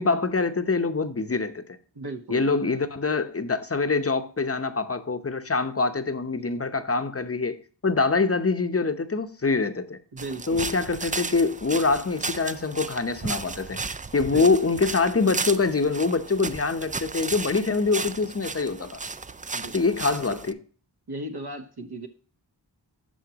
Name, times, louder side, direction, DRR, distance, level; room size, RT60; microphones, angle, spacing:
voice 1, 0.0-1.6 2.3-7.6 7.8-10.0 10.5-19.0 19.7-20.6, left 4 dB, 30° left, 0.7 m, -25 dB
voice 2, 1.9-2.5 10.1-10.7 14.2-14.8 19.5-19.8 20.3-20.4 21.1-22.1, right 2 dB, 60° right, 1.1 m, -37 dB
sound 1, 10.2-20.5, right 4 dB, 20° right, 0.3 m, -34 dB
12.5 x 4.4 x 2.8 m
wide cardioid pair, 60°, 44 cm